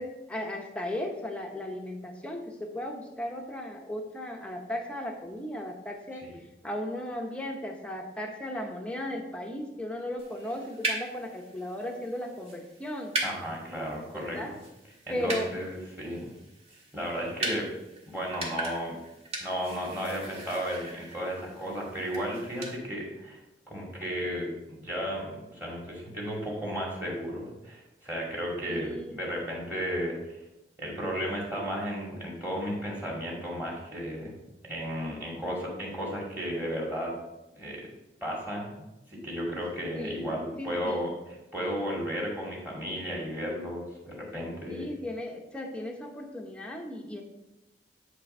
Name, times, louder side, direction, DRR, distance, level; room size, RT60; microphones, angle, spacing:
voice 1, 0.0-6.3 6.6-13.1 14.1-14.6 15.1-15.5 28.6-29.2 39.9-41.1 44.7-47.2, left 1 dB, 5° left, 2 dB, 0.8 m, -36 dB
sound 1, 10.2-22.8, right 2 dB, 35° right, 1.7 m, -39 dB
voice 2, 13.2-14.4 15.1-16.3 16.9-17.7 18.1-18.9 19.4-23.4 23.7-24.5 24.8-30.4 30.8-34.3 34.6-37.1 37.5-37.9 38.2-44.9, equal, 10° right, -3 dB, 2.1 m, -34 dB
9.8 x 3.4 x 5.3 m, 0.95 s
head